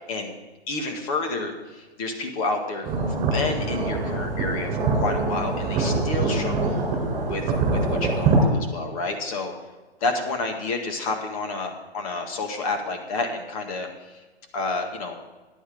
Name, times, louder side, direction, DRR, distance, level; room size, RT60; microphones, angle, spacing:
voice 1, 0.7-3.1 3.3-6.8 7.3-7.4 7.7-9.5 10.0-13.9 14.5-15.2, left 3 dB, 30° left, 4 dB, 1.8 m, -29 dB
sound 1, 2.8-8.4, right 3 dB, 20° right, 3.4 m, -24 dB
14.0 x 10.0 x 3.6 m, 1.2 s
hypercardioid pair, 140°, 33 cm